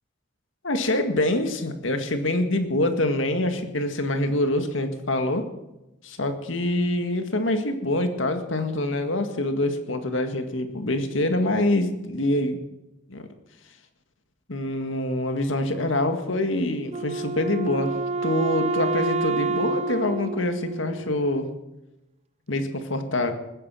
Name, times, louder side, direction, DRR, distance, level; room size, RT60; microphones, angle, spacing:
voice 1, 0.6-5.5 6.0-12.6 13.1-13.3 14.5-17.9 18.2-21.5 22.5-23.3, left 1 dB, 90° left, 7 dB, 1.9 m, -25 dB
Wind instrument woodwind instrument, 16.9-21.4, right 4 dB, 35° right, 0.4 m, -28 dB
20.0 x 10.0 x 6.3 m, 0.97 s
head